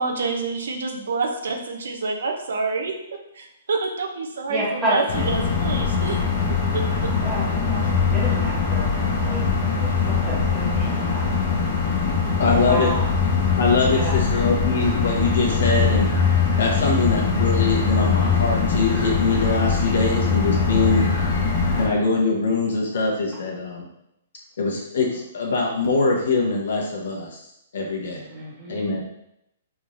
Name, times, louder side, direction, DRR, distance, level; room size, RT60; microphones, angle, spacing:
voice 1, 0.0-2.9 3.3-6.2 6.7-6.8 7.8-7.9, right 4 dB, 80° right, 3 dB, 0.6 m, -27 dB
voice 2, 4.5-5.3 7.2-9.4 9.8-11.3 12.7-13.1 13.9-14.4 28.3-28.8, right 1 dB, 10° right, -7 dB, 1.2 m, -30 dB
sound 1, 5.1-21.9, left 5 dB, 45° left, 0.9 m, -22 dB
voice 3, 12.4-12.9 13.6-16.1 16.6-21.0 21.7-23.9 24.6-27.4 27.7-28.2 28.7-29.0, left 3 dB, 75° left, -1 dB, 1.0 m, -23 dB
3.5 x 3.2 x 2.6 m, 0.81 s
hypercardioid pair, 145°, 0 cm